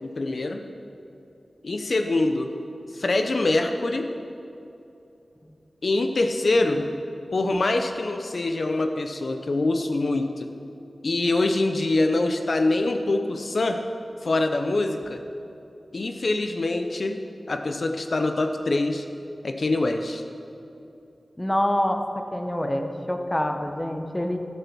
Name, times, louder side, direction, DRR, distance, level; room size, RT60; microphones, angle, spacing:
voice 1, 0.0-0.6 1.6-2.5 2.9-4.1 5.8-6.9 7.3-10.5 11.0-13.8 14.2-15.2 15.9-17.2 17.5-19.1 19.4-20.2, left 2 dB, 60° left, 6 dB, 0.6 m, -24 dB
voice 2, 21.4-22.0 22.3-24.4, left 1 dB, 15° left, 5 dB, 0.9 m, -26 dB
16.0 x 6.8 x 6.1 m, 2.8 s
wide cardioid pair, 90°, 0 cm